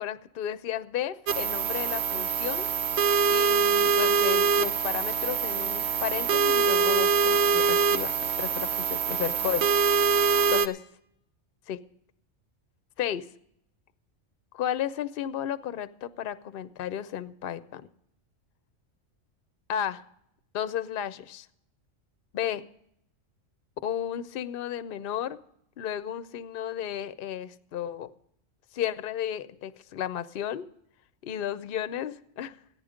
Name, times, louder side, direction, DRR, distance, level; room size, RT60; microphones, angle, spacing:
voice 1, 0.0-2.7 3.3-8.1 8.4-9.7 10.5-10.8 11.7-11.8 13.0-13.3 14.5-17.9 19.7-20.0 20.5-21.5 22.3-22.7 23.8-25.4 25.8-28.1 28.7-30.7 31.2-32.6, left 10 dB, 55° left, 15 dB, 0.7 m, -33 dB
sound 1, 1.3-10.7, right 5 dB, 65° right, 0.9 m, -24 dB
14.5 x 10.5 x 5.0 m, 0.73 s
omnidirectional pair, 1.3 m